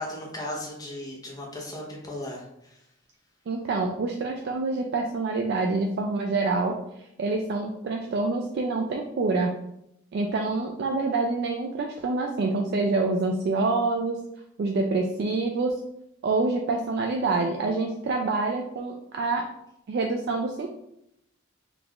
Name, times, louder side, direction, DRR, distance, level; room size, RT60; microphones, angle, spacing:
voice 1, 0.0-2.7, left 1 dB, 20° left, -2 dB, 0.7 m, -36 dB
voice 2, 3.5-6.8 7.2-9.5 10.1-14.2 14.6-15.7 16.2-19.4 19.9-20.7, right 3 dB, 55° right, 2 dB, 0.3 m, -26 dB
3.7 x 2.3 x 3.0 m, 0.80 s
head